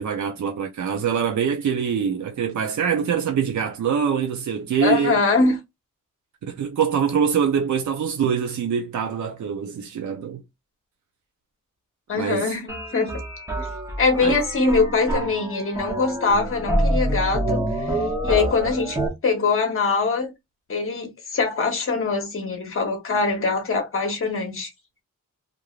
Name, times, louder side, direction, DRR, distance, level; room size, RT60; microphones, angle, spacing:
voice 1, 0.0-5.2 6.4-10.4 12.1-12.5 14.2-14.4, right 7 dB, 70° right, 0.5 m, -24 dB
voice 2, 4.8-5.6 12.1-13.2 13.6-13.7 14.0-17.7 18.2-20.3 20.7-24.7, left 4 dB, 45° left, 0.9 m, -23 dB
sound 1, 12.7-19.1, right 1 dB, 10° right, 0.7 m, -27 dB
3.1 x 2.5 x 2.3 m
wide cardioid pair, 175°, 31 cm